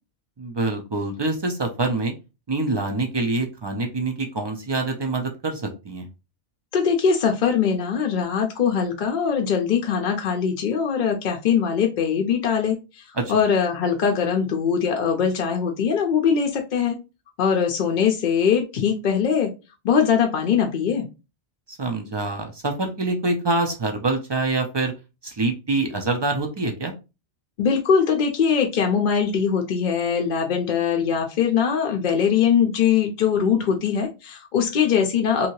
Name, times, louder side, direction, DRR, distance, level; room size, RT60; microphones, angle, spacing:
voice 1, 0.4-2.1 2.5-6.1 13.2-13.3 21.7-24.9 25.2-26.9, right 3 dB, 45° right, 4 dB, 0.3 m, -25 dB
voice 2, 6.7-17.0 17.4-19.5 19.8-21.1 27.6-35.5, left 7 dB, 60° left, 3 dB, 0.6 m, -21 dB
2.7 x 2.7 x 2.9 m, 0.29 s
omnidirectional pair, 1.1 m